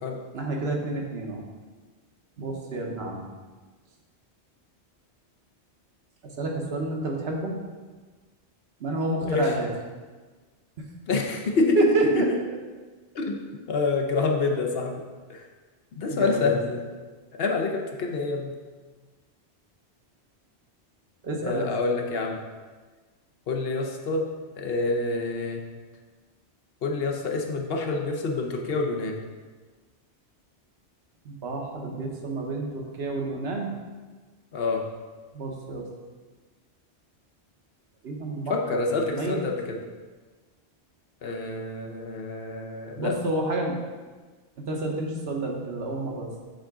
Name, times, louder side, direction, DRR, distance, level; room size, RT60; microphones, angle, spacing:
voice 1, 0.3-1.4 2.4-3.2 6.4-7.6 8.8-9.7 11.8-12.3 16.1-16.6 21.2-21.7 31.2-33.7 35.3-35.9 38.0-39.4 43.0-43.8 44.6-46.3, right 2 dB, 70° right, 0 dB, 1.1 m, -29 dB
voice 2, 9.2-9.5 11.1-12.4 13.1-13.4 13.7-15.0 15.3-15.5 15.9-16.8 17.3-18.6 21.4-22.4 23.5-24.3 24.6-25.6 26.8-29.2 34.5-34.9 38.5-39.8 41.2-43.2, left 3 dB, 65° left, 2 dB, 0.9 m, -27 dB
7.7 x 3.7 x 3.6 m, 1.4 s
omnidirectional pair, 1.1 m